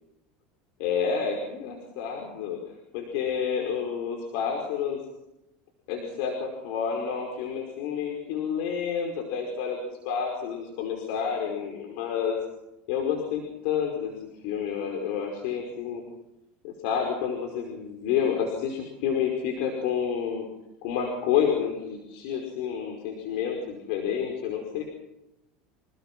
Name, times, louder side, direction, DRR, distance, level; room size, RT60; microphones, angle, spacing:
voice 1, 0.8-2.6 2.9-5.0 5.9-9.8 10.1-12.4 12.9-16.0 16.6-20.5 20.8-24.8, left 7 dB, 70° left, 2 dB, 5.1 m, -29 dB
28.0 x 18.0 x 6.1 m, 0.90 s
supercardioid pair, 130°, 4 cm